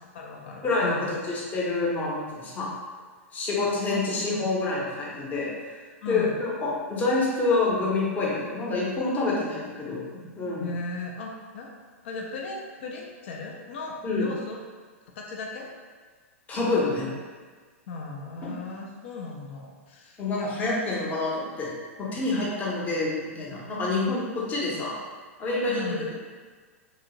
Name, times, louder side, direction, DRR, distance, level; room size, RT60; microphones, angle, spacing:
voice 1, 0.0-1.1 6.0-6.3 10.6-11.7 12.0-14.6 15.2-15.7 17.9-20.5 25.7-26.1, left 3 dB, 55° left, 0 dB, 0.4 m, -37 dB
voice 2, 0.6-2.7 3.3-5.8 6.1-10.7 14.0-14.3 16.5-17.1 18.4-18.5 20.2-21.7 22.0-25.0 25.4-25.8, left 3 dB, 20° left, -5 dB, 0.7 m, -27 dB
2.8 x 2.4 x 2.9 m, 1.5 s
figure-of-eight pair, 105°, 8 cm